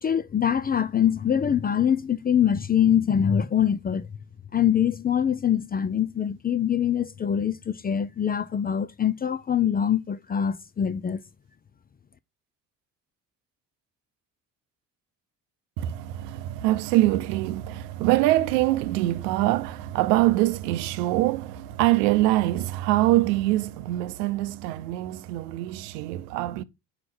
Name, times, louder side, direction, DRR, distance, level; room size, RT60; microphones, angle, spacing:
voice 1, 0.0-4.0 4.5-11.2, left 9 dB, 20° left, 0.4 m, -24 dB
voice 2, 15.8-26.6, right 16 dB, 75° right, 0.7 m, -24 dB
4.9 x 4.9 x 6.1 m
hypercardioid pair, 55°, 48 cm